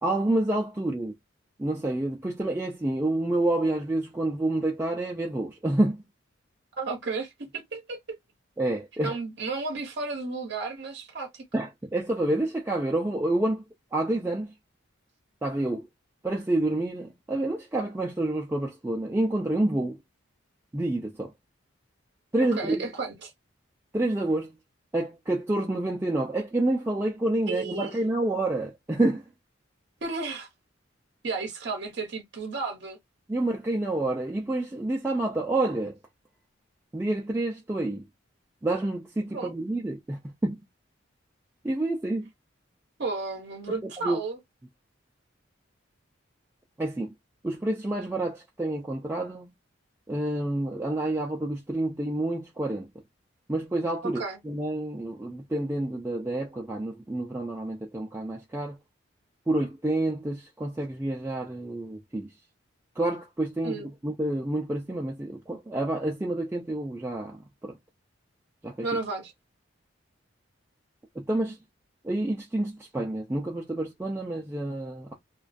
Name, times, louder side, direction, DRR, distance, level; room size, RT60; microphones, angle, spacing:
voice 1, 0.0-1.2 1.6-6.0 8.6-9.1 11.5-13.6 13.9-14.5 15.4-15.9 16.2-20.0 20.7-21.3 22.3-22.9 23.9-24.6 24.9-29.3 33.3-36.0 36.9-38.1 38.6-40.6 41.6-42.3 43.8-44.2 46.8-47.1 47.4-49.5 50.1-52.9 53.5-58.8 59.5-62.3 63.0-67.8 68.6-68.9 71.2-71.6 72.0-75.1, right 1 dB, 10° right, 0.3 m, -28 dB
voice 2, 6.8-8.2 9.0-11.4 22.6-23.3 27.5-27.9 30.0-30.5 31.2-33.0 39.3-39.5 43.0-44.4 54.0-54.4 63.6-63.9 68.8-69.3, right 3 dB, 55° right, 0.7 m, -33 dB
2.3 x 2.2 x 2.4 m
head